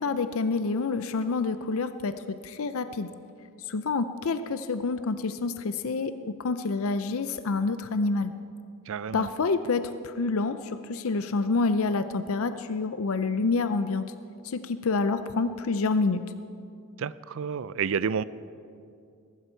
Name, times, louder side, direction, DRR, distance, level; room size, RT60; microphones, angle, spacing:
voice 1, 0.0-2.1 2.4-3.1 3.7-8.3 9.1-14.0 14.4-16.2, left 4 dB, 65° left, 11 dB, 0.5 m, -27 dB
voice 2, 8.9-9.3 17.0-18.2, right 6 dB, 60° right, 17 dB, 0.4 m, -30 dB
22.0 x 12.0 x 4.5 m, 2.5 s
head